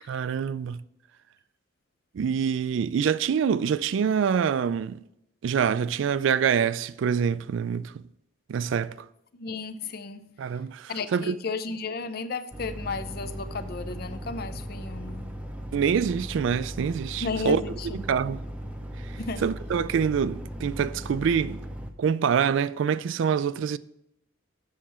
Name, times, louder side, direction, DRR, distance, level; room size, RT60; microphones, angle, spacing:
voice 1, 0.1-0.8 2.1-5.0 5.4-8.0 8.5-8.9 10.4-11.4 15.7-17.6 17.9-18.4 19.4-21.6 22.0-23.8, right 7 dB, 70° right, 0.3 m, -25 dB
voice 2, 9.3-10.3 10.9-15.3 17.2-18.0 19.2-19.5, left 4 dB, 50° left, 0.5 m, -34 dB
sound 1, 12.5-21.9, equal, 5° right, 0.5 m, -37 dB
7.3 x 6.2 x 4.3 m
head